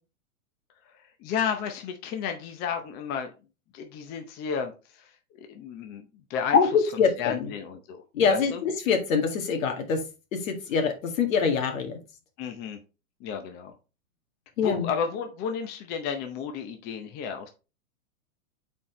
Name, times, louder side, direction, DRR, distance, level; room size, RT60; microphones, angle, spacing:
voice 1, 0.9-3.3 3.7-6.6 7.2-8.0 8.3-8.6 12.4-12.8 13.2-13.7 14.6-17.5, left 7 dB, 25° left, 6 dB, 0.6 m, -33 dB
voice 2, 6.5-7.5 8.1-10.0 10.3-12.0 14.6-14.9, left 5 dB, 65° left, 5 dB, 2.0 m, -24 dB
8.4 x 4.5 x 3.1 m, 0.31 s
hypercardioid pair, 145°, 43 cm